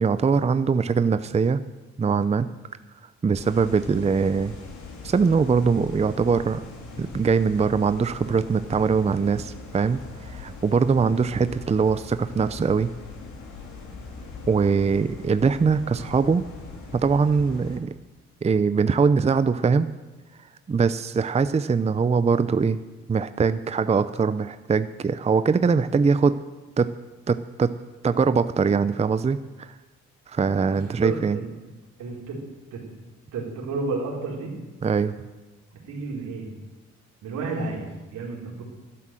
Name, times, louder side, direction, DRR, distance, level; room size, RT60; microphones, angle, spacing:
voice 1, 0.0-1.6 2.0-2.5 3.2-4.5 5.0-6.6 7.0-12.9 14.5-16.4 16.9-17.9 18.4-19.9 20.7-22.8 23.1-26.4 26.8-26.9 27.3-27.7 28.0-29.7 30.3-31.4 34.8-35.1, right 5 dB, 20° right, 12 dB, 0.6 m, -22 dB
sound 1, 3.3-17.8, left 4 dB, 75° left, 3.6 m, -41 dB
voice 2, 30.8-31.5 32.0-32.4 32.7-32.8 33.3-34.5 35.8-36.5 37.2-38.6, right 3 dB, 85° right, -2 dB, 4.3 m, -31 dB
12.5 x 12.0 x 7.6 m, 1.2 s
cardioid pair, 90°, 30 cm